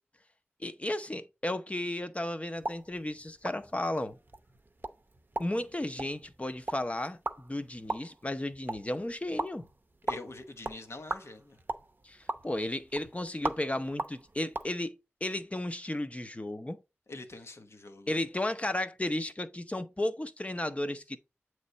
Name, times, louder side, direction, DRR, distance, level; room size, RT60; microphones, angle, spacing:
voice 1, 0.6-4.2 5.4-9.6 12.0-16.8 18.1-21.2, left 1 dB, 30° left, 0.6 m, -34 dB
sound 1, 2.6-14.7, right 2 dB, 45° right, 0.6 m, -40 dB
voice 2, 10.0-11.6 17.1-18.2, left 2 dB, 75° left, 0.9 m, -44 dB
7.9 x 3.2 x 3.9 m
wide cardioid pair, 50°, 5 cm